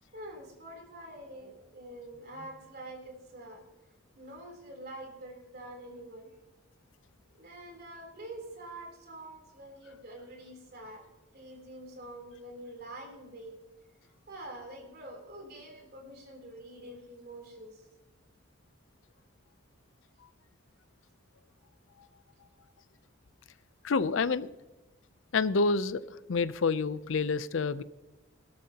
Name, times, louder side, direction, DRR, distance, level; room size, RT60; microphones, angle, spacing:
voice 1, 0.1-3.6 4.2-6.3 7.3-11.1 11.3-13.5 14.3-17.9, right 1 dB, 50° right, 2 dB, 3.5 m, -46 dB
voice 2, 23.8-24.5 25.3-26.0 26.3-27.8, left 4 dB, 75° left, 16 dB, 0.5 m, -28 dB
17.5 x 13.0 x 2.9 m, 1.1 s
head